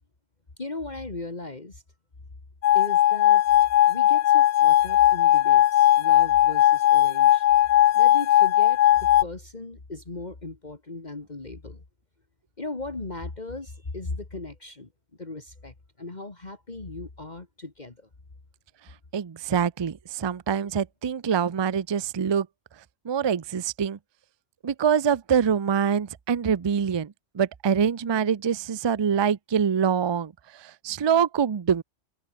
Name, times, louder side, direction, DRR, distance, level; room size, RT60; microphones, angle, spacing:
voice 1, 0.6-1.8 2.7-3.4 3.9-7.5 7.9-11.8 12.6-14.9 15.2-18.1, left 3 dB, 35° left, 2.2 m, -37 dB
sound 1, 2.6-9.2, left 13 dB, 65° left, 0.8 m, -18 dB
voice 2, 19.1-22.5 23.0-24.0 24.6-30.3 30.6-31.8, right 7 dB, 40° right, 0.4 m, -25 dB
omnidirectional pair, 1.3 m